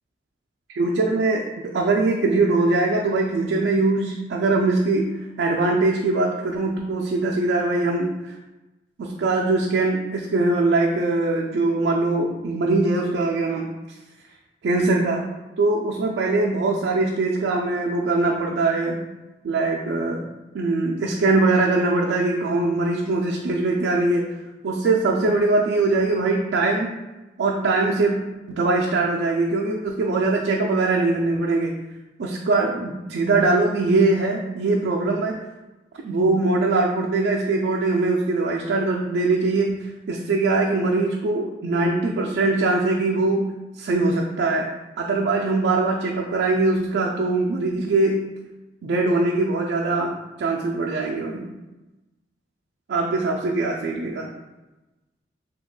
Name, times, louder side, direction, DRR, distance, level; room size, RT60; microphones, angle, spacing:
voice 1, 0.7-8.3 9.0-13.7 14.6-15.2 15.6-19.0 19.4-20.2 20.5-24.2 24.6-26.9 27.4-31.7 32.2-35.4 36.0-43.4 43.8-44.7 45.0-48.2 48.8-51.5 52.9-54.3, right 3 dB, 90° right, -1 dB, 0.3 m, -22 dB
2.9 x 2.2 x 3.7 m, 1.1 s
head